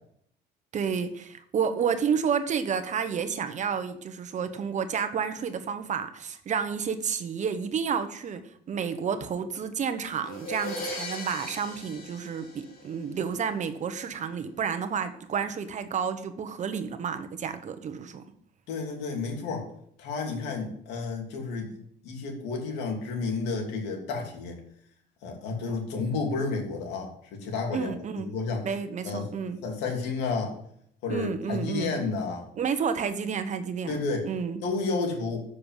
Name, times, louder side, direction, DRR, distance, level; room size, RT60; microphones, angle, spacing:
voice 1, 0.7-8.4 8.7-18.2 27.7-28.3 28.6-29.6 31.1-32.0 32.6-34.0 34.2-34.6, right 6 dB, 45° right, 10 dB, 1.1 m, -30 dB
sound 1, 10.3-13.2, left 1 dB, 55° left, 3.9 m, -38 dB
voice 2, 18.7-19.7 20.0-21.8 22.0-24.6 25.2-27.9 28.2-28.7 29.0-29.3 29.6-30.6 31.0-32.5 33.9-34.3 34.6-35.4, left 4 dB, 85° left, 1 dB, 2.9 m, -31 dB
7.8 x 6.6 x 7.3 m, 0.67 s
cardioid pair, 110°, 17 cm